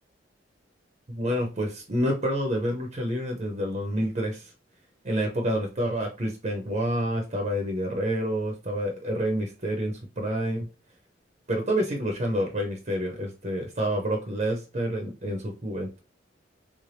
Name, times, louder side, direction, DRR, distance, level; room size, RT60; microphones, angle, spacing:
voice 1, 1.1-4.5 5.0-10.7 11.5-16.0, equal, 40° right, 2 dB, 0.7 m, -28 dB
3.5 x 3.3 x 2.6 m, 0.33 s
head